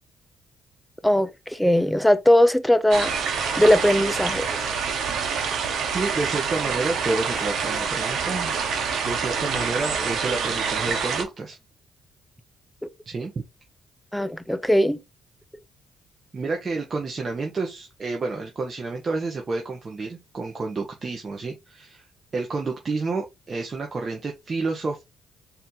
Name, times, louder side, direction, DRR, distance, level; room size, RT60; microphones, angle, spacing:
voice 1, 1.0-3.1 3.6-4.5 12.8-12.9 14.1-15.0, left 1 dB, 5° left, 0.5 m, -19 dB
sound 1, 2.9-11.2, right 6 dB, 70° right, 1.2 m, -26 dB
voice 2, 5.9-8.5 9.0-11.6 13.1-13.3 16.3-22.0 22.3-25.0, right 3 dB, 40° right, 1.0 m, -29 dB
4.2 x 2.9 x 3.8 m
cardioid pair, 90°, 0 cm